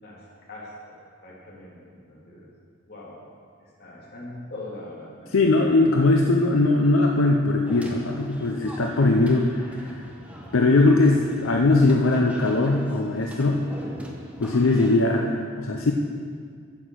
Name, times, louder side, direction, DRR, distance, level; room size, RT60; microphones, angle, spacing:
voice 1, 0.0-2.5 2.9-3.2 3.6-5.7, left 1 dB, 55° left, -6 dB, 3.3 m, -42 dB
voice 2, 5.3-10.0 10.5-13.7 14.4-15.9, left 2 dB, 90° left, 2 dB, 0.7 m, -20 dB
sound 1, 7.7-15.0, equal, 5° right, 1.2 m, -41 dB
9.8 x 8.1 x 6.4 m, 2.1 s
head